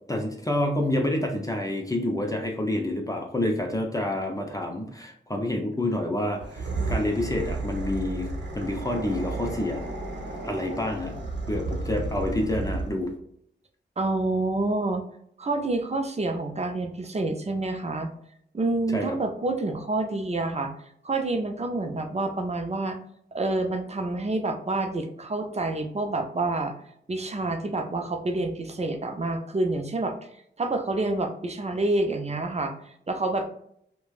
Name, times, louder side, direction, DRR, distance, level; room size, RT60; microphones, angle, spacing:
voice 1, 0.1-8.3 8.5-9.8 10.4-11.1 11.5-13.1 18.9-19.2, left 1 dB, 20° left, 2 dB, 0.7 m, -28 dB
sound 1, 6.3-13.1, right 3 dB, 70° right, 0.8 m, -33 dB
voice 2, 14.0-15.0 15.4-18.1 18.5-20.7 21.0-23.0 23.3-26.7 27.1-30.1 30.6-33.5, right 2 dB, 35° right, 5 dB, 0.6 m, -28 dB
3.0 x 2.2 x 2.4 m, 0.70 s
cardioid pair, 45°, 19 cm